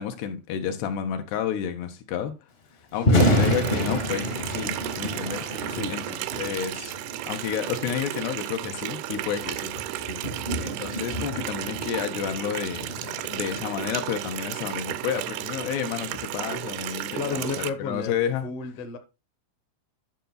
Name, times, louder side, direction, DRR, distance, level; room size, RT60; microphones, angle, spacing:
voice 1, 0.0-2.3 2.9-7.0 7.3-9.7 10.6-18.5, left 9 dB, 85° left, 3.3 m, -31 dB
Thunder, 2.9-17.1, equal, 40° left, 0.8 m, -30 dB
voice 2, 3.0-3.4 5.7-5.9 17.1-19.0, left 5 dB, 60° left, 1.6 m, -32 dB
Water tap faucet, 3.2-17.7, right 15 dB, 85° right, 2.6 m, -34 dB
11.0 x 5.8 x 4.0 m
omnidirectional pair, 4.7 m